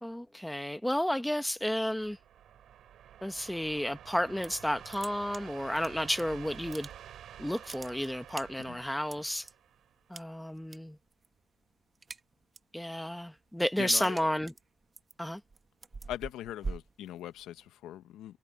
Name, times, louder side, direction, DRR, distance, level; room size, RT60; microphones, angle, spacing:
voice 1, 0.0-2.2 3.2-6.9 7.4-9.5 10.1-11.0 12.7-14.5 15.2-15.4, equal, 5° left, 1.2 m, -32 dB
sound 1, 1.7-10.2, right 10 dB, 70° right, 6.7 m, -50 dB
sound 2, 4.2-4.6 4.9-6.2 6.5-7.2 7.5-9.5 10.1-10.8 11.1-11.4 11.7-12.8 13.2-17.7, right 4 dB, 30° right, 1.1 m, -44 dB
voice 2, 13.8-14.3 16.1-18.4, left 12 dB, 85° left, 1.0 m, -41 dB
cardioid pair, 90°, 0 cm